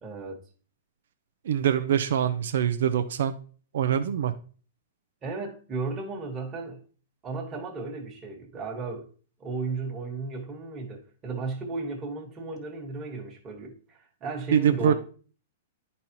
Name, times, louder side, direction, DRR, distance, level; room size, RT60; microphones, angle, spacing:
voice 1, 0.0-0.4 5.2-6.8 7.2-9.1 9.4-14.9, right 3 dB, 25° right, 1.4 m, -34 dB
voice 2, 1.5-3.3 3.7-4.3 14.5-14.9, right 10 dB, 70° right, 0.5 m, -24 dB
10.5 x 4.1 x 2.9 m
hypercardioid pair, 135°, 0 cm